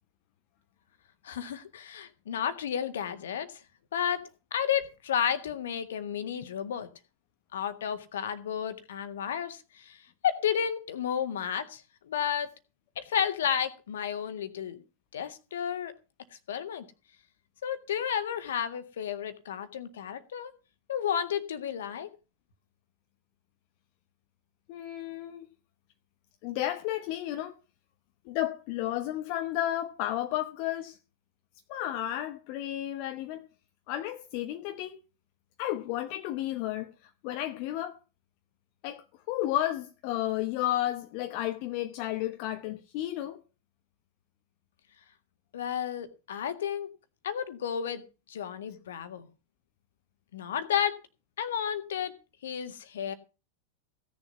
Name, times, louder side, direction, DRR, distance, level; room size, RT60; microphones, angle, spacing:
voice 1, 1.2-3.5 3.9-6.9 7.5-10.0 10.2-12.5 13.0-14.8 15.1-15.9 16.5-16.8 17.6-20.5 20.9-22.1 45.5-46.9 47.2-48.0 48.3-49.3 50.3-51.0 51.4-52.1 52.4-53.1, left 8 dB, 60° left, 1.8 m, -32 dB
voice 2, 24.7-25.5 26.4-27.5 28.3-31.0 31.7-33.4 33.9-35.0 35.6-38.0 38.8-43.4, left 13 dB, 45° left, 1.0 m, -32 dB
16.0 x 7.1 x 6.9 m
figure-of-eight pair, 90°, 0 cm